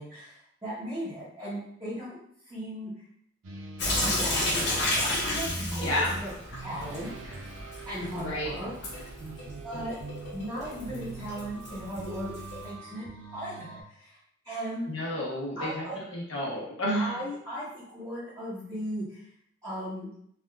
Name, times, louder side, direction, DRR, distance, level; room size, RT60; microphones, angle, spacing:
voice 1, 0.0-2.2 2.4-2.9 3.9-6.0 6.2-6.3 6.6-7.5 7.9-9.1 9.6-10.0 10.3-12.3 12.6-14.2 14.4-14.9 15.6-16.0 16.9-19.2 19.6-20.1, equal, 15° right, -12 dB, 0.9 m, -37 dB
sound 1, 3.4-13.8, right 3 dB, 80° right, 0.5 m, -43 dB
Sink (filling or washing) / Drip, 3.8-12.7, left 1 dB, 60° left, 0.8 m, -33 dB
voice 2, 5.8-6.2 8.2-8.5 14.9-17.2, equal, 85° left, -4 dB, 1.0 m, -30 dB
3.4 x 2.3 x 2.3 m, 0.68 s
head